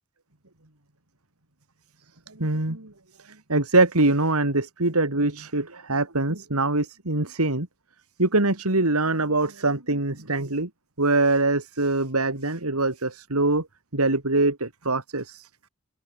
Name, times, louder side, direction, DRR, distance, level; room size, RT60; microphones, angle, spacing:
voice 1, 2.3-2.9 3.2-7.7 8.2-10.7 11.0-13.7 13.9-15.5, right 2 dB, 85° right, 3.2 m, -23 dB
head